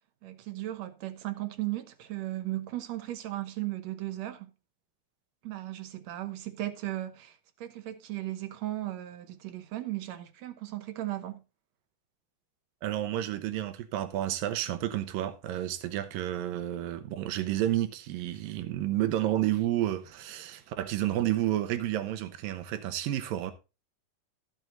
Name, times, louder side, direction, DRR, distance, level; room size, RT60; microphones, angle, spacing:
voice 1, 0.2-4.5 5.4-11.4, right 15 dB, 65° right, 2.0 m, -36 dB
voice 2, 12.8-23.5, right 13 dB, 85° right, 2.7 m, -30 dB
14.0 x 6.3 x 3.9 m
omnidirectional pair, 3.9 m